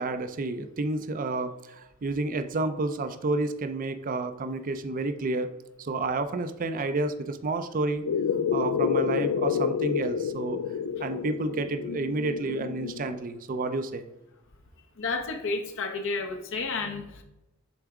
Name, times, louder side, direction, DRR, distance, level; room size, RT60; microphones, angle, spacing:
voice 1, 0.0-5.5 5.8-8.0 8.5-10.6 11.0-14.0, right 2 dB, 40° right, 9 dB, 0.5 m, -30 dB
sound 1, 8.0-13.2, left 7 dB, 85° left, 0.3 m, -29 dB
voice 2, 15.0-17.2, left 3 dB, 65° left, 5 dB, 0.8 m, -31 dB
7.2 x 3.4 x 4.8 m, 0.93 s
head